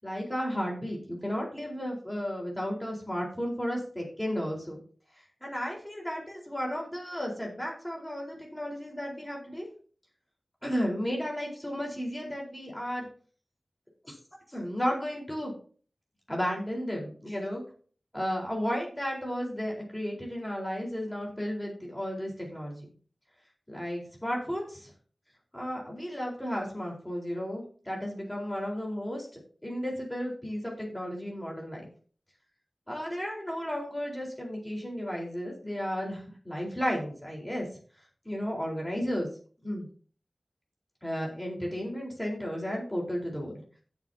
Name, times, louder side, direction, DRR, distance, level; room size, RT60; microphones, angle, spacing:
voice 1, 0.0-4.8 5.4-9.7 10.6-13.1 14.0-14.1 14.5-15.5 16.3-17.6 18.1-22.8 23.7-24.9 25.5-31.9 32.9-37.7 38.2-39.3 39.6-39.9 41.0-43.6, equal, 10° left, -2 dB, 4.2 m, -33 dB
16.5 x 7.4 x 2.8 m, 0.42 s
wide cardioid pair, 50°, 0 cm